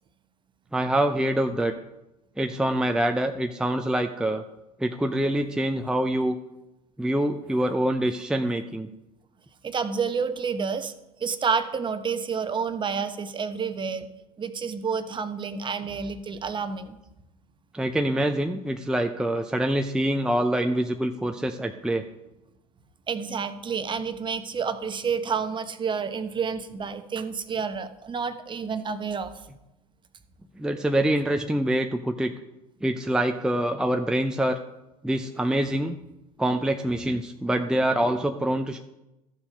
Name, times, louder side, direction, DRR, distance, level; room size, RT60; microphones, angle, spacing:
voice 1, 0.7-1.7 2.4-4.4 4.8-6.4 7.0-8.9 17.7-22.0 30.6-32.3 32.8-34.6 35.0-36.0 36.4-38.8, right 1 dB, 5° right, 5 dB, 0.6 m, -25 dB
voice 2, 9.6-10.9 11.2-14.1 14.4-17.0 23.1-29.3, right 6 dB, 25° right, 10 dB, 1.0 m, -29 dB
13.5 x 7.1 x 5.2 m, 0.94 s
figure-of-eight pair, 75°, 19 cm